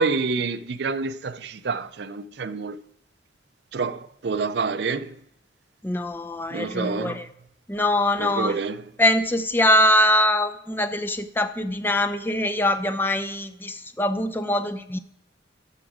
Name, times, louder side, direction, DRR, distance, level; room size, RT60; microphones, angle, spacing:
voice 1, 0.0-2.8 3.7-5.2 6.5-7.3 8.2-8.9, right 4 dB, 60° right, 0.5 m, -28 dB
voice 2, 5.8-7.3 7.7-8.6 9.0-15.0, left 1 dB, 10° left, 0.5 m, -23 dB
13.5 x 6.1 x 4.9 m
head